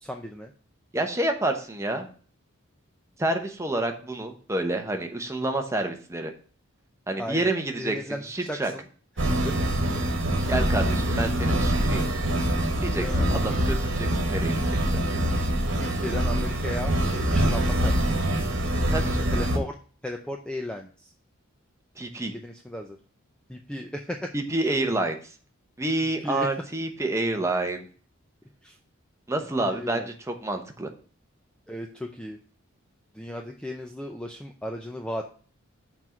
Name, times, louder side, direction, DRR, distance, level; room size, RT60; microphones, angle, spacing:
voice 1, 0.0-0.5 7.2-8.8 9.2-9.5 10.4-10.5 13.0-13.6 15.0-15.2 15.8-18.2 19.3-19.8 20.0-21.1 22.1-23.0 23.5-24.3 26.2-26.5 28.6-28.8 29.6-30.1 31.7-32.4 33.1-35.3, left 1 dB, 5° left, 3 dB, 0.5 m, -36 dB
voice 2, 0.9-2.1 3.2-6.3 7.1-8.7 10.5-12.1 12.8-13.0 13.3-14.6 18.9-19.4 22.0-22.3 24.3-25.3 25.8-27.9 29.3-30.9, right 2 dB, 15° right, 4 dB, 0.9 m, -28 dB
sound 1, 9.2-19.6, right 1 dB, 60° right, 1.4 m, -24 dB
6.0 x 4.5 x 6.1 m, 0.42 s
head